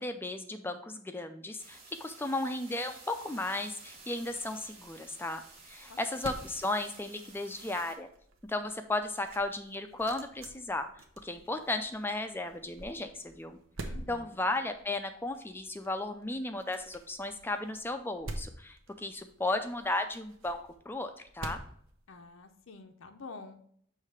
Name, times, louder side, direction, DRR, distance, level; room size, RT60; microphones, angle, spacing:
voice 1, 0.0-5.4 5.7-8.1 8.5-10.9 11.2-13.6 14.1-20.6 20.9-21.6, left 2 dB, 10° left, 8 dB, 0.4 m, -35 dB
sound 1, 1.6-7.9, right 4 dB, 30° right, 1.4 m, -52 dB
sound 2, 4.0-22.7, right 2 dB, 80° right, 0.8 m, -48 dB
voice 2, 5.9-6.2 13.8-14.4 22.1-23.6, left 4 dB, 75° left, 5 dB, 0.6 m, -48 dB
6.6 x 3.2 x 4.8 m, 0.63 s
head